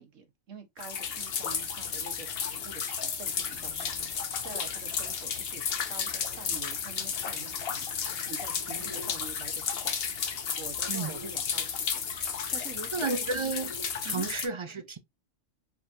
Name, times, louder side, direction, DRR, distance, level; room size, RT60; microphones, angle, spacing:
voice 1, 0.0-4.0 4.4-7.9 8.3-9.9 10.6-12.0 12.5-13.2 14.0-14.3, right 5 dB, 75° right, 1.6 m, -46 dB
sound 1, 0.8-14.5, left 7 dB, 55° left, 0.9 m, -33 dB
sound 2, 3.5-11.4 12.6-13.9, left 1 dB, 30° left, 1.5 m, -51 dB
voice 2, 12.9-13.7 14.0-15.0, right 4 dB, 40° right, 0.4 m, -32 dB
4.8 x 3.7 x 2.6 m
omnidirectional pair, 1.3 m